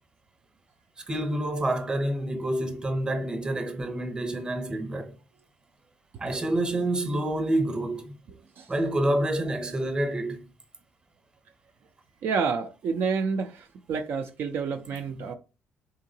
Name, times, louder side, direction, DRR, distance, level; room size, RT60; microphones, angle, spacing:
voice 1, 1.0-5.2 6.2-8.1 8.7-10.4 15.2-15.3, right 1 dB, 20° right, 0.8 m, -28 dB
voice 2, 12.2-15.3, right 5 dB, 65° right, 0.4 m, -29 dB
3.8 x 3.5 x 2.7 m
cardioid pair, 95°, 4 cm